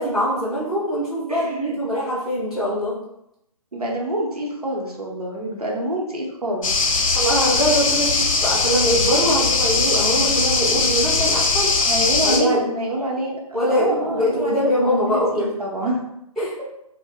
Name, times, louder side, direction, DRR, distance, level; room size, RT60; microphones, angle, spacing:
voice 1, 0.0-2.9 7.1-11.7 12.2-12.6 13.5-15.5 16.4-16.5, equal, ahead, -13 dB, 0.5 m, -22 dB
voice 2, 1.3-1.7 3.7-6.7 11.8-16.0, equal, 85° right, -1 dB, 0.8 m, -27 dB
sound 1, 6.6-12.4, left 4 dB, 60° left, 0.6 m, -20 dB
2.3 x 2.1 x 3.4 m, 0.83 s
figure-of-eight pair, 140°, 19 cm